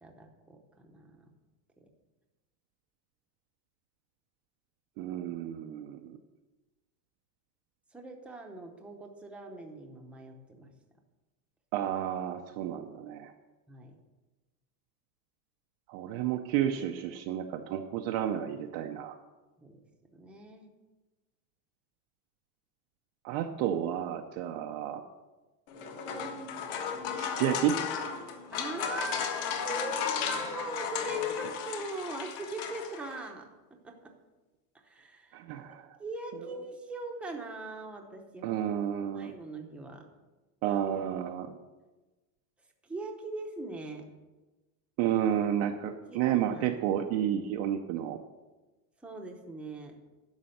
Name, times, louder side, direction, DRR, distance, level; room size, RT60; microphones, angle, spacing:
voice 1, 0.0-1.2 1.8-1.9 7.9-10.7 13.7-14.0 19.6-19.8 20.1-20.7 28.5-34.1 34.7-35.4 35.7-38.6 39.1-40.1 42.8-44.1 45.9-46.8 49.0-50.0, right 2 dB, ahead, 1 dB, 0.7 m, -41 dB
voice 2, 5.0-6.2 11.7-13.3 15.9-19.1 23.2-25.0 27.2-27.8 35.3-35.9 38.4-39.3 40.6-41.5 45.0-48.2, right 10 dB, 35° right, 4 dB, 0.5 m, -31 dB
sound 1, 25.7-33.3, left 7 dB, 50° left, 1.5 m, -35 dB
11.0 x 6.2 x 7.7 m, 1.2 s
supercardioid pair, 165°, 50 cm